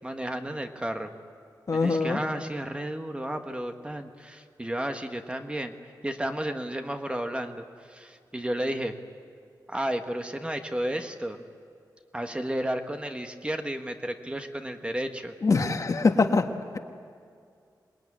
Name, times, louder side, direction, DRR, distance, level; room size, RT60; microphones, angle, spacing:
voice 1, 0.0-1.1 1.7-5.7 6.0-8.9 9.7-11.4 12.1-15.3, right 1 dB, 15° right, 6 dB, 1.3 m, -32 dB
voice 2, 1.7-2.2 15.4-16.5, left 4 dB, 45° left, 6 dB, 1.5 m, -23 dB
26.5 x 20.5 x 9.7 m, 2.3 s
wide cardioid pair, 125°, 7 cm